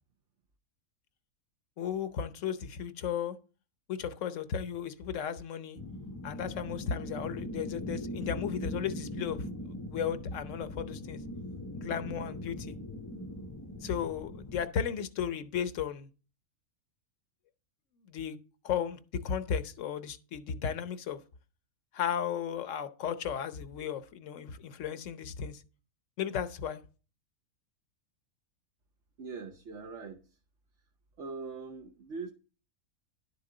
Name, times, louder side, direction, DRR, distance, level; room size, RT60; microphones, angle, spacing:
voice 1, 1.8-3.4 3.9-5.8 6.2-11.2 11.7-12.8 13.8-16.1 18.1-18.4 18.6-21.2 21.9-25.6 26.2-26.8, left 8 dB, 65° left, 1.1 m, -35 dB
sound 1, 5.8-14.7, left 1 dB, 15° left, 0.6 m, -40 dB
voice 2, 29.2-30.4 31.2-32.3, right 4 dB, 60° right, 1.2 m, -42 dB
11.0 x 7.3 x 3.8 m
omnidirectional pair, 1.5 m